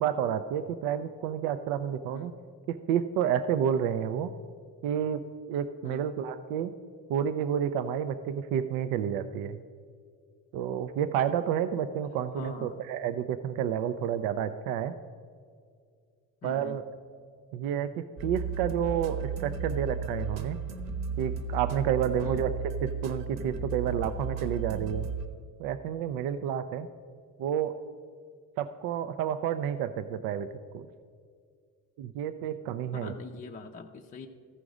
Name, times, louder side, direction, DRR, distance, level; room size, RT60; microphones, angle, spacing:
voice 1, 0.0-2.3 2.7-4.3 4.8-5.2 5.5-6.7 7.1-9.6 10.5-14.9 16.4-16.8 17.5-20.6 21.2-25.1 25.6-26.9 27.4-27.7 28.6-30.5 30.7-30.9 32.0-33.1, right 9 dB, 85° right, 10 dB, 0.5 m, -30 dB
voice 2, 12.3-12.8 16.4-16.8 22.2-22.4 32.9-34.3, left 4 dB, 25° left, 2 dB, 0.4 m, -44 dB
sound 1, 18.2-25.3, right 5 dB, 50° right, 1.0 m, -34 dB
14.5 x 5.1 x 4.8 m, 2.1 s
cardioid pair, 135°, 34 cm